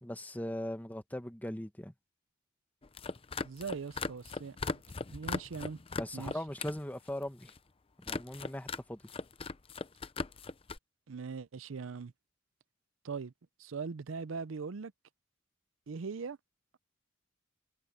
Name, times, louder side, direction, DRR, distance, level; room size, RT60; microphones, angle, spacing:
voice 1, 0.0-1.9 6.0-7.5 8.1-9.0, left 1 dB, 10° left, 1.2 m, -39 dB
sound 1, 2.8-6.8 7.1-7.6 8.0-8.8 9.1-10.8, left 4 dB, 30° left, 0.6 m, -38 dB
voice 2, 3.4-4.8 5.1-5.8 6.1-6.4 11.1-12.1 13.0-13.3 13.6-14.9 15.9-16.4, right 5 dB, 75° right, 0.5 m, -40 dB
head